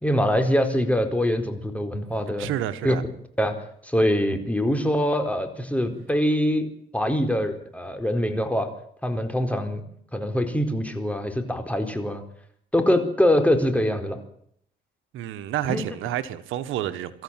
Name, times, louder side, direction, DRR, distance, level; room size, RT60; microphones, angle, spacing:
voice 1, 0.0-2.5 2.8-3.0 3.4-3.6 3.8-8.7 9.0-9.8 10.1-12.2 12.7-14.2 15.6-15.8, equal, 5° left, 4.4 m, -24 dB
voice 2, 2.4-3.0 15.1-17.2, right 12 dB, 90° right, 1.5 m, -29 dB
24.0 x 14.0 x 9.1 m
cardioid pair, 90°, 20 cm